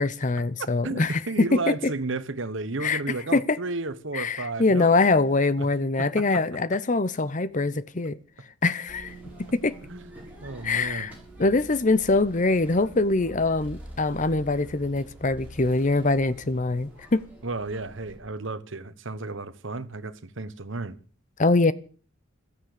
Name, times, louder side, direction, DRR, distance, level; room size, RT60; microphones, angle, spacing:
voice 1, 0.0-1.9 2.8-3.0 3.3-3.6 4.1-8.2 8.6-9.1 9.5-9.7 10.6-11.1 11.4-17.2 21.4-21.7, left 3 dB, 35° left, 0.7 m, -23 dB
voice 2, 0.8-4.9 5.6-5.7 6.0-6.2 9.9-10.0 10.4-11.1 17.4-21.0, right 3 dB, 65° right, 1.2 m, -32 dB
sound 1, 8.9-18.2, right 1 dB, 5° right, 7.3 m, -46 dB
15.5 x 14.0 x 6.8 m
head